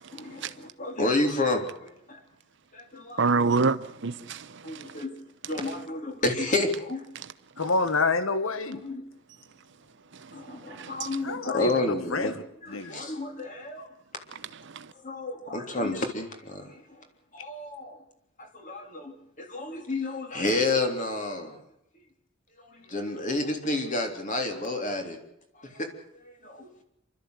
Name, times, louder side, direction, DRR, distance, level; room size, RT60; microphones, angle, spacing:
voice 1, 0.1-2.2 2.7-3.2 4.6-5.2 5.5-7.1 8.7-9.0 10.3-12.4 12.6-13.9 14.9-17.0 17.3-18.0 18.4-21.6 22.6-25.2 25.6-25.9 26.1-26.7, left 2 dB, 40° left, 3.5 m, -30 dB
voice 2, 3.2-5.0 10.2-11.1 14.6-14.9, right 4 dB, 60° right, 0.9 m, -28 dB
voice 3, 7.6-8.8 11.2-11.7 12.1-13.0, left 3 dB, 80° left, 1.1 m, -27 dB
27.5 x 13.0 x 8.1 m
head